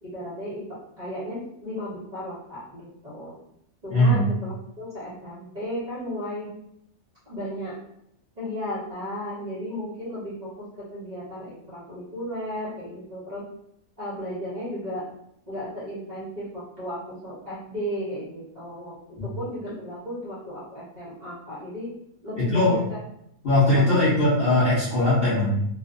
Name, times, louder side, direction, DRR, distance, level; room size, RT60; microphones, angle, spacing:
voice 1, 0.0-3.3 3.8-6.5 7.3-7.7 8.4-13.4 14.0-15.0 15.5-21.9 22.2-23.0 23.7-24.0, equal, 40° right, -9 dB, 0.6 m, -35 dB
voice 2, 3.9-4.2 22.4-22.8 23.4-25.7, left 1 dB, 60° left, -9 dB, 0.6 m, -20 dB
2.4 x 2.4 x 2.4 m, 0.74 s
omnidirectional pair, 1.7 m